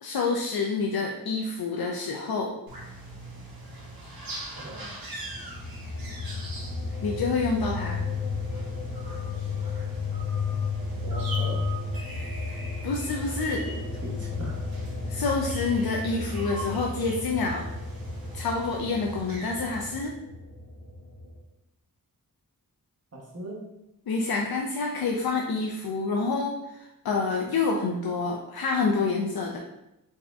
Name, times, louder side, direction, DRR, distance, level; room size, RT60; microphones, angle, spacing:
voice 1, 0.0-2.5 7.0-8.0 12.8-13.7 15.1-17.7 18.3-20.2 24.1-29.6, left 4 dB, 75° left, 0 dB, 0.5 m, -28 dB
sound 1, 2.7-20.0, right 2 dB, 75° right, 0.9 m, -42 dB
voice 2, 4.5-4.9 11.0-11.7 13.7-14.7 23.1-23.7, right 1 dB, 45° right, -2 dB, 0.9 m, -39 dB
sound 2, 5.2-21.4, left 4 dB, 55° left, 0.9 m, -33 dB
4.1 x 3.4 x 2.3 m, 0.89 s
wide cardioid pair, 85°, 36 cm